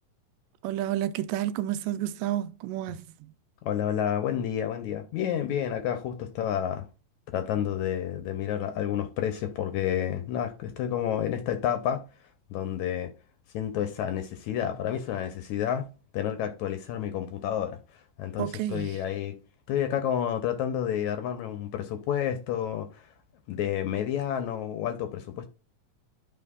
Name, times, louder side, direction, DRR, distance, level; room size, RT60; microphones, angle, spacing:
voice 1, 0.6-3.1 18.4-18.9, right 12 dB, 90° right, 2.3 m, -30 dB
voice 2, 3.6-6.9 7.3-12.0 12.5-13.1 13.5-15.9 16.1-17.8 18.2-19.4 19.7-23.1 23.5-25.5, left 10 dB, 75° left, 1.9 m, -30 dB
12.0 x 4.2 x 2.3 m
omnidirectional pair, 3.9 m